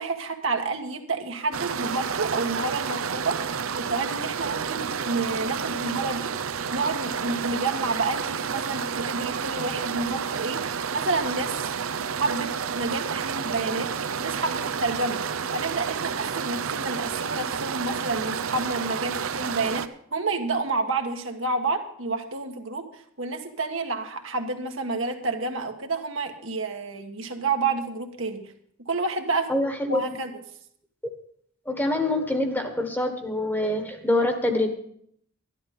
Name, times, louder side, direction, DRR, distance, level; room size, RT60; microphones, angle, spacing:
voice 1, 0.0-3.4 3.8-11.7 12.2-13.9 14.2-15.2 15.5-28.5 28.8-29.5 29.9-30.3, right 3 dB, 70° right, 4 dB, 1.5 m, -29 dB
sound 1, 1.5-19.9, right 6 dB, 85° right, 0.7 m, -30 dB
voice 2, 29.5-30.0 31.7-34.7, left 1 dB, 10° left, 6 dB, 1.3 m, -25 dB
12.5 x 11.5 x 5.4 m, 0.66 s
head